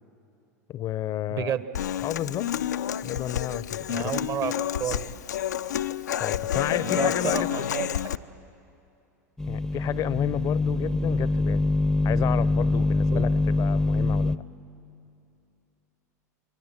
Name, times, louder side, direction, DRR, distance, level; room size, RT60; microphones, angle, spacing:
voice 1, 0.7-1.5 2.0-2.5 3.0-4.1 6.2-7.7 9.5-11.7 12.0-14.4, left 12 dB, 40° left, 19 dB, 0.7 m, -31 dB
voice 2, 1.3-1.6 3.9-4.5 4.8-5.2 6.8-8.0 13.1-13.2, right 9 dB, 40° right, 14 dB, 1.0 m, -31 dB
Human voice / Acoustic guitar, 1.7-8.2, left 10 dB, 80° left, 0.5 m, -29 dB
sound 1, 9.4-14.4, left 2 dB, 5° left, 0.7 m, -24 dB
29.0 x 23.0 x 7.4 m, 2.7 s
hypercardioid pair, 90°, 9 cm